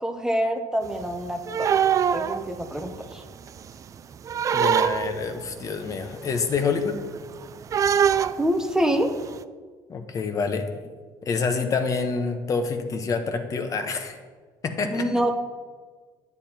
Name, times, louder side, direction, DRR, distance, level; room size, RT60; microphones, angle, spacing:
voice 1, 0.0-1.7 2.1-3.2 8.4-9.1 14.9-15.4, equal, 5° right, 5 dB, 0.9 m, -26 dB
sound 1, 0.8-3.2 3.5-5.4 5.9-6.0 6.3-9.4, right 8 dB, 35° right, 0.4 m, -23 dB
voice 2, 4.5-6.9 9.9-10.7 11.2-14.2 14.6-15.1, left 5 dB, 35° left, 7 dB, 1.1 m, -27 dB
9.8 x 9.4 x 4.4 m, 1.5 s
cardioid pair, 115°, 9 cm